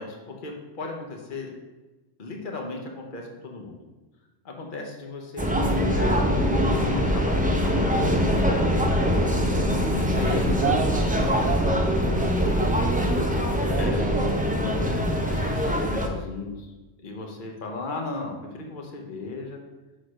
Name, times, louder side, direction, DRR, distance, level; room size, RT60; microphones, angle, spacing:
voice 1, 0.0-1.5 2.2-3.8 4.4-8.5 9.9-10.5 13.8-14.1 14.5-16.7 17.0-19.6, left 3 dB, 50° left, 1 dB, 1.1 m, -36 dB
sound 1, 5.4-16.1, equal, 10° right, 0.6 m, -23 dB
voice 2, 9.4-13.3 13.6-14.3, right 5 dB, 80° right, 0 dB, 0.9 m, -32 dB
6.4 x 3.8 x 6.3 m, 1.1 s
omnidirectional pair, 1.1 m